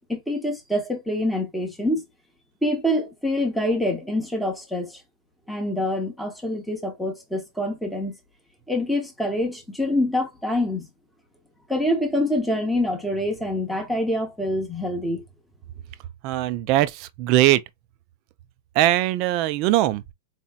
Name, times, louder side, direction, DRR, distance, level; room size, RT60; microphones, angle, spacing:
voice 1, 0.0-2.0 2.6-5.0 5.5-8.2 8.7-10.9 11.7-15.2, left 1 dB, ahead, 0.7 m, -25 dB
voice 2, 16.2-17.6 18.8-20.1, right 15 dB, 30° right, 0.3 m, -21 dB
4.1 x 2.8 x 2.2 m
supercardioid pair, 180°, 0 cm